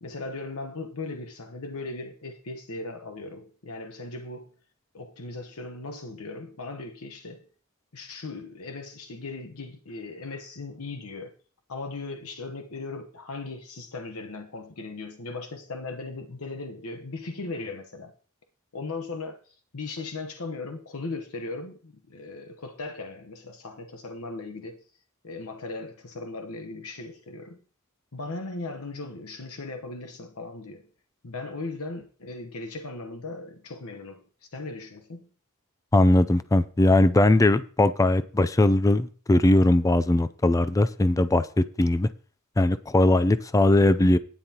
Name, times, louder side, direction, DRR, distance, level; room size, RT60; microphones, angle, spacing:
voice 1, 0.0-4.5 4.9-7.4 7.9-11.3 11.7-18.1 18.7-24.8 25.2-27.6 28.1-30.9 31.2-35.3, left 3 dB, 75° left, 1.1 m, -38 dB
voice 2, 35.9-42.1 42.6-44.2, left 2 dB, 15° left, 0.4 m, -20 dB
12.5 x 9.8 x 2.9 m
head